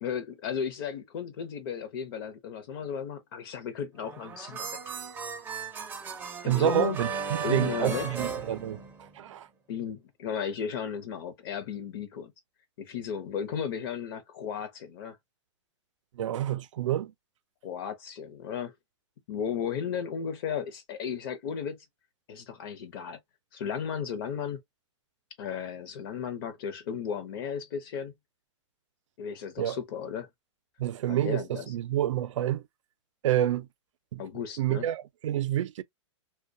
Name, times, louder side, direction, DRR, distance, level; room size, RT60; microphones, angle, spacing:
voice 1, 0.0-4.7 6.4-7.0 7.4-8.1 9.7-12.3 12.8-15.2 17.6-18.7 19.3-21.8 22.3-23.2 23.5-24.6 25.4-28.1 29.2-30.3 31.1-31.7 34.2-34.9, left 7 dB, 50° left, 0.6 m, -35 dB
sound 1, 4.0-9.3, right 5 dB, 15° right, 0.4 m, -36 dB
voice 2, 6.4-9.5 16.1-17.1 29.6-29.8 30.8-32.6 33.2-33.7 34.1-34.2 34.6-35.8, right 12 dB, 80° right, 0.4 m, -28 dB
2.2 x 2.1 x 2.5 m
hypercardioid pair, 155°, 16 cm